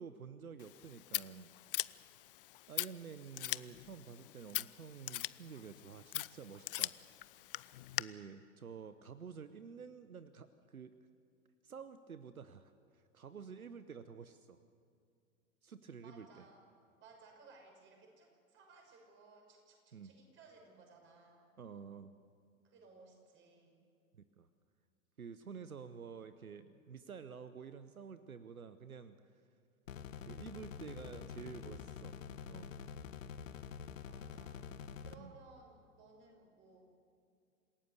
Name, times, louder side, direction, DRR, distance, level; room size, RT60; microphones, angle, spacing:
voice 1, 0.0-1.5 2.7-7.0 7.9-11.0 11.6-14.6 15.6-16.5 19.9-20.1 21.6-22.1 24.1-24.5 25.2-29.4 30.2-32.2 32.5-32.7 35.2-35.3, right 6 dB, 80° right, 12 dB, 0.9 m, -50 dB
Scissors, 0.6-8.0, left 16 dB, 40° left, 0.5 m, -42 dB
voice 2, 16.0-16.7 17.0-21.5 22.6-23.8 34.1-34.7 35.0-36.9, right 3 dB, 25° right, 1 dB, 6.2 m, -60 dB
sound 1, 29.9-35.2, left 7 dB, 65° left, 1.2 m, -47 dB
27.5 x 17.0 x 6.8 m, 2.4 s
figure-of-eight pair, 100°, 42 cm